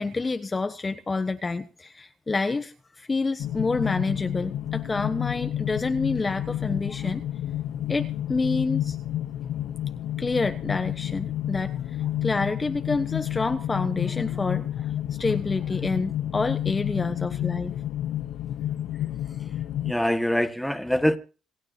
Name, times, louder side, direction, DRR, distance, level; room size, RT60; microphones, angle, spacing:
voice 1, 0.0-7.2 7.9-9.0 10.2-14.7 15.2-17.7, left 3 dB, 25° left, 1.1 m, -28 dB
sound 1, 3.4-19.9, left 12 dB, 85° left, 0.7 m, -30 dB
voice 2, 19.0-19.5 19.8-21.2, equal, 5° left, 1.7 m, -25 dB
27.0 x 9.7 x 2.8 m
cardioid pair, 90°, 0 cm